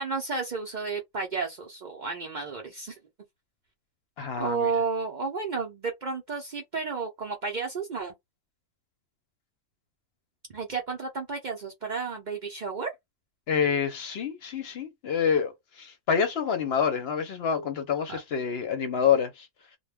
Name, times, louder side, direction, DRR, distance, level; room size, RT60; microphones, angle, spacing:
voice 1, 0.0-3.0 4.3-8.1 10.5-12.9, right 4 dB, 50° right, 0.5 m, -32 dB
voice 2, 4.2-4.7 13.5-19.5, left 7 dB, 60° left, 0.8 m, -27 dB
2.2 x 2.1 x 3.3 m
omnidirectional pair, 1.3 m